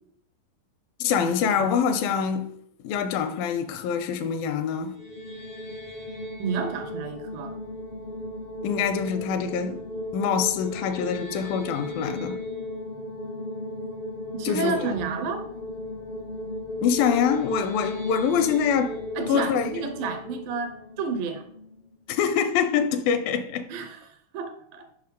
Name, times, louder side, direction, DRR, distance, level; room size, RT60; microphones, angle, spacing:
voice 1, 1.0-2.5 2.8-5.0 8.6-9.8 10.1-12.4 14.5-15.0 16.8-19.0 19.3-19.8 22.1-23.7, left 7 dB, 80° left, 2.2 m, -25 dB
sound 1, 4.8-21.9, left 1 dB, 65° left, 0.5 m, -36 dB
voice 2, 6.4-7.6 14.3-15.5 19.2-21.4 23.7-24.9, right 5 dB, 75° right, 2.3 m, -31 dB
5.7 x 5.5 x 5.2 m
omnidirectional pair, 4.2 m